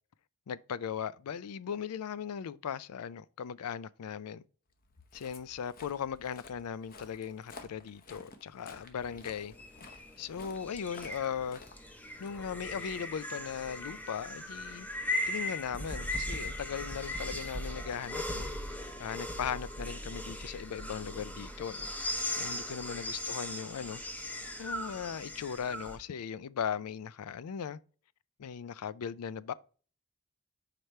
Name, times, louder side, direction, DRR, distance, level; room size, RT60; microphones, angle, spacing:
voice 1, 0.5-4.4 5.1-9.5 9.9-11.6 12.2-14.9 15.3-18.5 19.0-21.9 22.4-24.0 24.6-27.8 28.4-29.5, left 7 dB, 85° left, 0.4 m, -38 dB
Walk footsteps, 4.8-13.1, left 3 dB, 40° left, 0.9 m, -53 dB
sound 1, 9.0-26.0, left 1 dB, 5° left, 0.6 m, -38 dB
sound 2, 13.0-20.0, right 3 dB, 85° right, 1.1 m, -58 dB
4.9 x 4.5 x 5.4 m
head